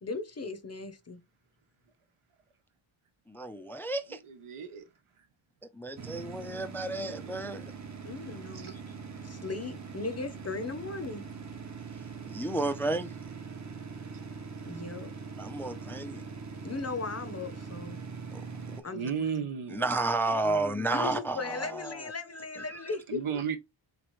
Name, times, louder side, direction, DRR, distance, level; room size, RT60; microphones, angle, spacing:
voice 1, 0.0-1.2 8.0-8.8 9.2-11.2 14.6-15.1 16.6-18.0 18.8-19.4 20.9-23.4, left 3 dB, 30° left, 0.7 m, -37 dB
voice 2, 3.3-4.2 5.7-7.7 12.2-13.1 15.4-16.2 18.3-18.4 18.7-18.8 19.7-22.1 22.5-22.8, right 2 dB, 5° left, 0.4 m, -32 dB
voice 3, 4.1-4.8 7.0-7.3 8.5-8.7 18.9-19.9 23.1-23.6, right 7 dB, 90° right, 1.0 m, -34 dB
sound 1, 6.0-18.8, right 5 dB, 35° right, 0.7 m, -42 dB
3.8 x 3.2 x 3.0 m
wide cardioid pair, 100°, 48 cm